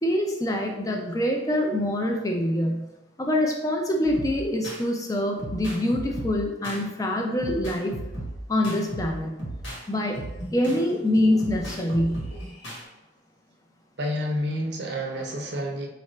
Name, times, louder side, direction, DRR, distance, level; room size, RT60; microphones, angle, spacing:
voice 1, 0.0-2.8 3.2-8.0 8.5-9.4 9.9-10.2 10.5-12.2, left 1 dB, 15° left, 2 dB, 0.4 m, -25 dB
sound 1, 4.1-4.8 5.4-6.8 7.4-9.8 10.1-12.8, right 1 dB, 75° left, 1.2 m, -36 dB
voice 2, 14.0-15.9, equal, 60° right, 1 dB, 0.7 m, -29 dB
4.4 x 2.5 x 3.1 m, 1.0 s
head